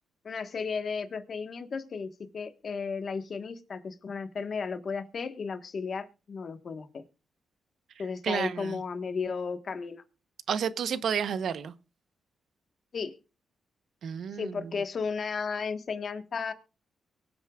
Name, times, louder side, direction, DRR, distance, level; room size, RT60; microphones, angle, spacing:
voice 1, 0.2-7.0 8.0-10.0 12.9-13.1 14.3-16.5, left 5 dB, 45° left, 1.4 m, -34 dB
voice 2, 8.2-8.8 10.5-11.7 14.0-14.6, right 7 dB, 70° right, 0.9 m, -31 dB
23.5 x 8.0 x 2.4 m
cardioid pair, 120°, 0 cm